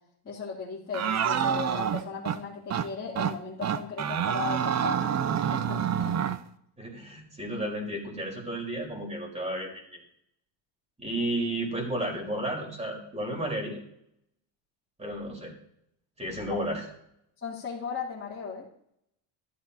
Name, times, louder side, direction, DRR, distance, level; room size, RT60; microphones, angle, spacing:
voice 1, 0.2-5.0 5.5-6.1 16.5-16.6 17.4-18.7, left 5 dB, 30° left, -8 dB, 3.0 m, -37 dB
sound 1, 0.9-2.4 2.7-2.9 3.2-3.3 3.6-6.4, right 8 dB, 35° right, 0.7 m, -27 dB
voice 2, 6.8-10.0 11.0-13.8 15.0-15.5 16.2-16.9, right 1 dB, 15° right, 0 dB, 4.2 m, -32 dB
13.5 x 13.0 x 2.8 m, 0.72 s
cardioid pair, 115°, 45 cm